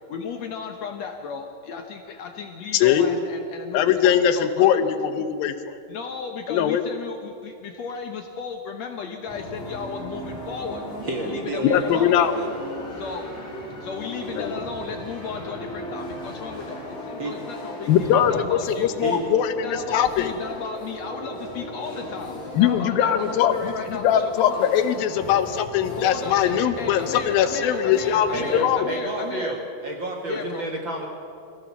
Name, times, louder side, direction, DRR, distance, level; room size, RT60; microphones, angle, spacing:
voice 1, 0.1-4.7 5.9-10.8 11.2-12.2 13.0-13.3 13.8-19.0 19.6-24.7 26.0-29.5 30.3-30.7, left 5 dB, 65° left, 4 dB, 1.8 m, -35 dB
voice 2, 2.7-3.1 3.7-5.8 6.5-6.8 11.7-12.4 14.4-14.5 17.9-20.3 22.5-28.9, left 9 dB, 85° left, 10 dB, 2.7 m, -21 dB
sound 1, 9.3-28.6, equal, 40° left, 5.2 m, -36 dB
voice 3, 11.0-13.1 17.2-17.3 19.0-19.3 28.3-31.1, right 1 dB, 45° right, 1 dB, 1.7 m, -31 dB
22.5 x 16.0 x 7.2 m, 2.5 s
omnidirectional pair, 4.1 m